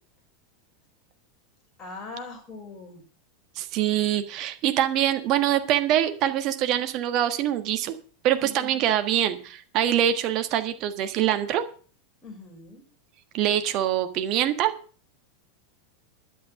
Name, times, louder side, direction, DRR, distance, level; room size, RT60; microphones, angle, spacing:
voice 1, 1.8-3.0 8.3-8.8 12.2-12.8, left 3 dB, 25° left, 2 dB, 6.2 m, -40 dB
voice 2, 3.5-8.0 8.2-11.6 13.3-14.7, right 11 dB, 40° right, 9 dB, 1.4 m, -24 dB
12.0 x 8.6 x 6.4 m, 0.40 s
figure-of-eight pair, 85°, 0 cm